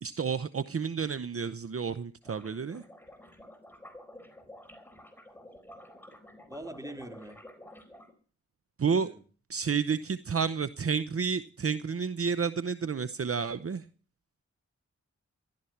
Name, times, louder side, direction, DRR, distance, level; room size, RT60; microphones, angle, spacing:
voice 1, 0.0-2.8 8.8-9.1 9.5-13.9, right 6 dB, 50° right, 13 dB, 0.8 m, -30 dB
sound 1, 2.2-8.1, left 1 dB, 5° left, 4.3 m, -51 dB
voice 2, 6.5-7.4 8.8-9.1, right 1 dB, 10° right, 4 dB, 3.6 m, -43 dB
14.5 x 12.0 x 5.9 m, 0.41 s
cardioid pair, 55°, 29 cm